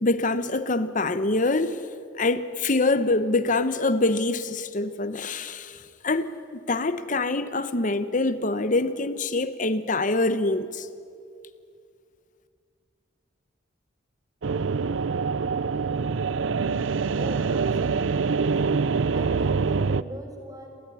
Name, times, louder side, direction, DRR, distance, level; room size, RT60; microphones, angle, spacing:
voice 1, 0.0-1.8 2.2-10.9, left 2 dB, 45° left, 1.0 m, -25 dB
sound 1, 14.4-20.0, right 5 dB, 80° right, 0.6 m, -25 dB
voice 2, 17.2-18.5 19.1-20.9, right 1 dB, 20° right, 3.8 m, -41 dB
29.5 x 13.5 x 9.8 m
head